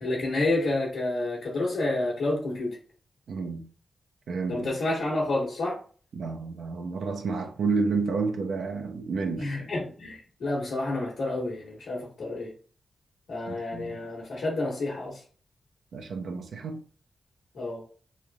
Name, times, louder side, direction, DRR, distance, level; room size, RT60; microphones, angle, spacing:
voice 1, 0.0-2.8 4.5-5.8 9.4-12.5 13.3-15.2 17.5-17.8, left 2 dB, 90° left, 1.1 m, -29 dB
voice 2, 3.3-3.7 4.3-4.7 6.1-9.7 13.5-14.0 15.9-16.8, right 4 dB, 90° right, 0.4 m, -30 dB
3.1 x 2.5 x 2.2 m
cardioid pair, 90°, 0 cm